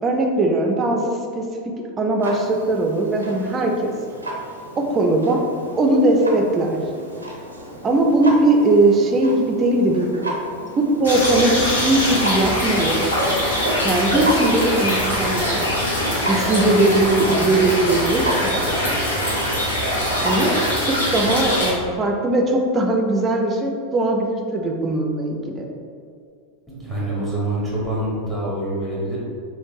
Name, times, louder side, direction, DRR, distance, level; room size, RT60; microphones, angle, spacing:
voice 1, 0.0-3.9 4.8-5.4 5.8-6.8 7.8-10.1 10.8-13.0 13.8-15.6 16.3-18.6 20.2-20.6 20.8-25.7, right 2 dB, 25° right, 2 dB, 0.5 m, -20 dB
Clock, 2.2-20.7, right 1 dB, 80° right, 0.5 m, -33 dB
sound 1, 11.0-21.7, equal, 75° left, 1.0 m, -22 dB
voice 2, 26.7-29.2, right 1 dB, 5° left, -7 dB, 1.0 m, -25 dB
3.5 x 3.0 x 2.7 m, 2.3 s
figure-of-eight pair, 85°, 0 cm